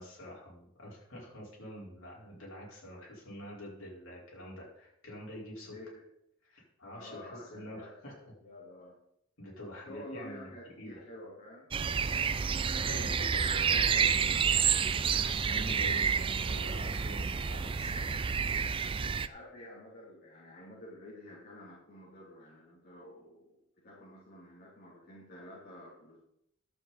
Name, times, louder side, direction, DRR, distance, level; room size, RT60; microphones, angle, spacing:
voice 1, 0.0-5.7 6.4-8.1 9.4-11.0 12.5-18.2, left 1 dB, 75° left, -4 dB, 4.8 m, -46 dB
voice 2, 5.6-6.0 6.9-7.9 8.2-9.0 9.9-11.7 19.0-26.2, left 1 dB, 50° left, -7 dB, 3.1 m, -50 dB
sound 1, 11.7-19.3, right 6 dB, 25° right, 0.3 m, -29 dB
11.5 x 8.0 x 4.3 m, 0.76 s
head